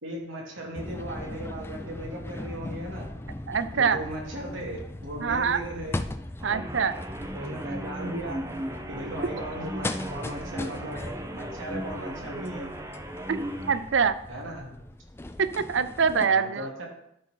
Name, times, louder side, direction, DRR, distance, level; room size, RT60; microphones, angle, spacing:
voice 1, 0.0-3.1 3.7-6.0 7.3-8.4 8.9-11.0 11.3-12.7 14.3-14.8 16.2-16.9, right 1 dB, 90° right, -2 dB, 2.8 m, -37 dB
sound 1, 0.7-16.3, left 1 dB, 10° left, 0.3 m, -39 dB
voice 2, 3.5-4.0 5.2-5.6 6.4-6.9 9.0-9.1 13.3-13.4 13.6-14.2 15.4-16.8, right 6 dB, 70° right, 13 dB, 0.5 m, -25 dB
sound 2, 6.4-13.8, right 1 dB, 15° right, 0.7 m, -36 dB
12.5 x 4.4 x 4.5 m, 0.75 s
head